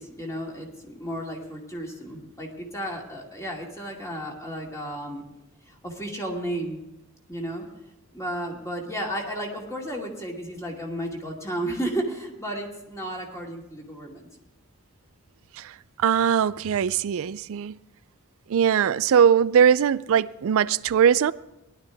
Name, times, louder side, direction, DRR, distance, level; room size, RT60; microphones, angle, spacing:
voice 1, 0.0-5.2 5.7-6.8 7.3-7.7 8.1-14.3, right 1 dB, 15° left, 2.3 m, -33 dB
voice 2, 16.0-17.8 18.5-21.3, right 8 dB, 70° right, 0.4 m, -20 dB
18.5 x 11.5 x 3.5 m
head